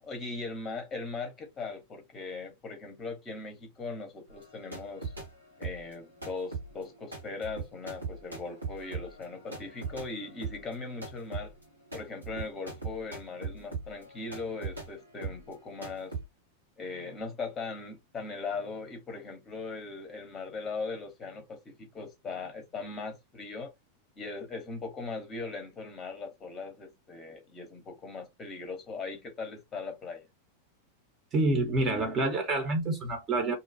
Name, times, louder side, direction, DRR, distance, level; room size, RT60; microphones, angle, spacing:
voice 1, 0.0-5.1 5.6-11.5 11.9-16.1 16.8-23.7 24.2-30.3, left 4 dB, 20° left, 0.8 m, -39 dB
sound 1, 4.3-5.3 5.6-14.9 15.2-15.5 15.8-16.2, right 4 dB, 80° right, 1.3 m, -40 dB
voice 2, 31.3-33.5, right 2 dB, 25° right, 0.8 m, -27 dB
2.6 x 2.3 x 2.6 m
figure-of-eight pair, 90°, 0 cm